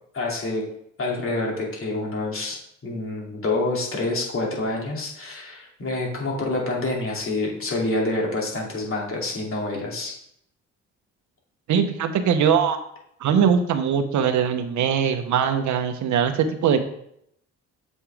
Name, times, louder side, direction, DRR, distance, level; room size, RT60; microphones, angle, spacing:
voice 1, 0.1-0.6 1.0-2.6 2.8-10.1, left 2 dB, 45° left, -2 dB, 2.7 m, -27 dB
voice 2, 11.7-12.8 13.2-16.8, right 7 dB, 70° right, 8 dB, 0.9 m, -21 dB
7.3 x 5.5 x 3.4 m, 0.72 s
cardioid pair, 90°, 30 cm